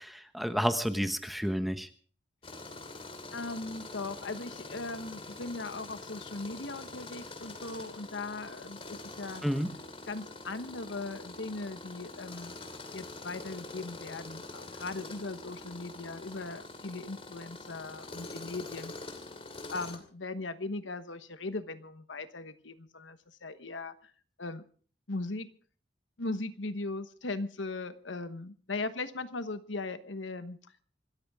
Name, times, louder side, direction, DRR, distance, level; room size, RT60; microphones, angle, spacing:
voice 1, 0.0-1.9 9.4-9.7, equal, ahead, 8 dB, 1.1 m, -30 dB
Tools, 2.4-20.0, left 2 dB, 30° left, 2.7 m, -45 dB
voice 2, 3.3-9.4 10.1-12.5 12.9-19.2 19.7-24.1 24.4-24.6 25.1-25.5 26.2-30.6, left 3 dB, 85° left, 11 dB, 1.2 m, -39 dB
26.0 x 14.0 x 3.6 m, 0.43 s
head